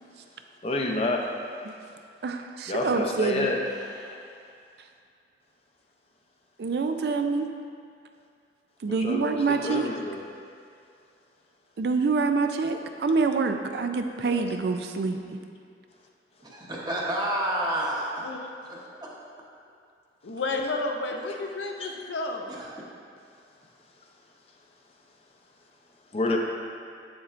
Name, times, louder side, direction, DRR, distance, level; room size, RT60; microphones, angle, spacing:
voice 1, 0.6-1.3 2.7-3.6 8.9-10.2 14.2-14.6 20.5-20.7 21.3-21.4 21.8-21.9 26.1-26.4, left 2 dB, 35° left, 1 dB, 0.6 m, -29 dB
voice 2, 2.2-3.5 6.6-7.5 8.8-9.9 11.8-15.4, right 4 dB, 60° right, 6 dB, 0.4 m, -26 dB
voice 3, 4.0-4.3 16.4-18.2 18.6-19.1 22.5-22.7, right 1 dB, 25° right, -4 dB, 0.9 m, -30 dB
voice 4, 20.2-22.5, left 2 dB, 80° left, 2 dB, 0.6 m, -31 dB
7.9 x 7.0 x 2.5 m, 2.3 s
head